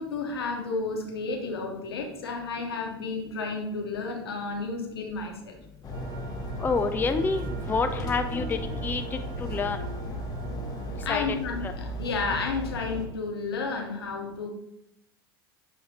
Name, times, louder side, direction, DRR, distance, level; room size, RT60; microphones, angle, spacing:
voice 1, 0.0-5.6 11.0-11.6 12.0-14.5, left 4 dB, 80° left, 2 dB, 1.2 m, -32 dB
sound 1, 5.8-13.1, right 1 dB, 30° left, 1.2 m, -35 dB
sound 2, 5.9-11.1, right 5 dB, 55° right, 1.3 m, -44 dB
voice 2, 6.6-9.8 11.1-11.2 11.6-11.7, left 4 dB, 15° left, 7 dB, 0.5 m, -28 dB
7.9 x 3.2 x 4.3 m, 0.81 s
hypercardioid pair, 85°, 13 cm